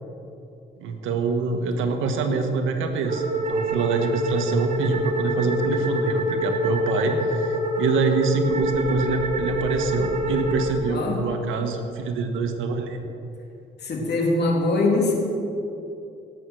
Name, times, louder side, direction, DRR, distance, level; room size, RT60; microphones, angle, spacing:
voice 1, 0.8-3.2 3.5-13.0, right 4 dB, 85° right, 5 dB, 1.6 m, -25 dB
sound 1, 3.0-10.7, equal, 35° right, 2.1 m, -26 dB
voice 2, 10.9-11.3 12.5-12.6 13.8-15.1, left 2 dB, 55° left, 0 dB, 3.3 m, -23 dB
17.5 x 8.3 x 6.4 m, 2.7 s
cardioid pair, 90°, 20 cm